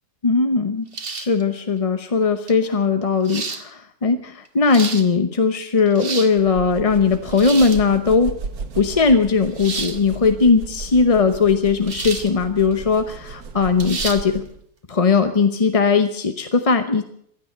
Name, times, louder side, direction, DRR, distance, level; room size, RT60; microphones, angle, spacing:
voice 1, 0.2-8.3 8.8-14.4 14.9-17.0, left 4 dB, 30° left, 8 dB, 0.7 m, -19 dB
sound 1, 0.9-1.4 2.5-2.6 3.2-3.6 4.5-5.0 5.8-6.3 7.3-7.8 9.6-10.0 11.9-12.3 12.7-12.8 13.8-14.2, right 4 dB, 40° right, 1.5 m, -30 dB
sound 2, 6.4-14.6, right 4 dB, 65° right, 1.7 m, -35 dB
16.0 x 11.5 x 7.8 m, 0.66 s
omnidirectional pair, 1.7 m